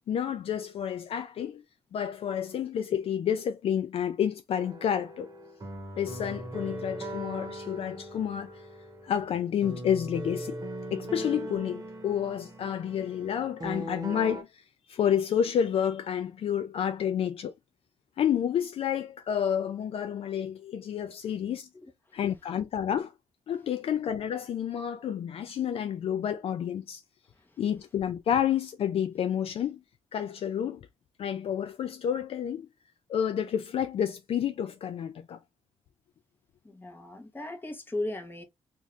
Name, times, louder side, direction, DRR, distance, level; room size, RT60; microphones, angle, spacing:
voice 1, 0.1-1.6 1.9-5.3 6.0-8.6 9.0-10.6 10.9-14.6 14.9-17.5 18.2-21.7 22.1-23.1 23.5-27.0 27.6-29.8 30.1-30.9 31.2-32.7 33.1-35.4, left 9 dB, 60° left, 0.4 m, -30 dB
sound 1, 4.5-14.4, right 1 dB, 35° right, 1.0 m, -40 dB
voice 2, 36.6-38.4, left 2 dB, 20° left, 1.0 m, -36 dB
2.7 x 2.5 x 3.3 m
cardioid pair, 115°, 11 cm